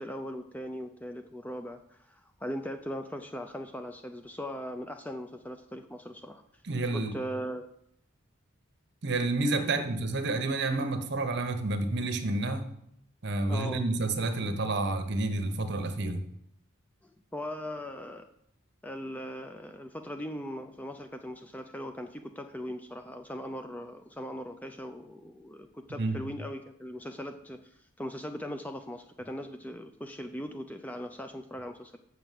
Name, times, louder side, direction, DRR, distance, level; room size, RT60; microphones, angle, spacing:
voice 1, 0.0-6.6 6.9-7.6 13.5-13.8 17.0-18.3 18.8-32.0, equal, 5° left, 7 dB, 0.4 m, -39 dB
voice 2, 6.7-7.1 9.0-12.7 13.2-16.2 25.9-26.2, right 2 dB, 50° right, 7 dB, 1.0 m, -29 dB
6.9 x 5.9 x 7.5 m, 0.74 s
head